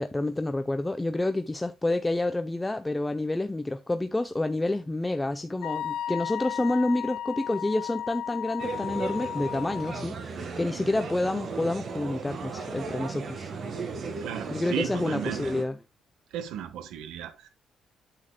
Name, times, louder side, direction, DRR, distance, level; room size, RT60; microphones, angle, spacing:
voice 1, 0.0-13.5 14.5-15.8, left 2 dB, 15° left, 0.6 m, -29 dB
Wind instrument woodwind instrument, 5.6-10.0, left 10 dB, 85° left, 0.7 m, -34 dB
sound 1, 8.6-15.6, right 4 dB, 55° right, 2.0 m, -36 dB
voice 2, 14.2-15.5 16.3-17.5, right 10 dB, 90° right, 1.3 m, -35 dB
8.7 x 8.6 x 2.3 m
cardioid pair, 90°, 0 cm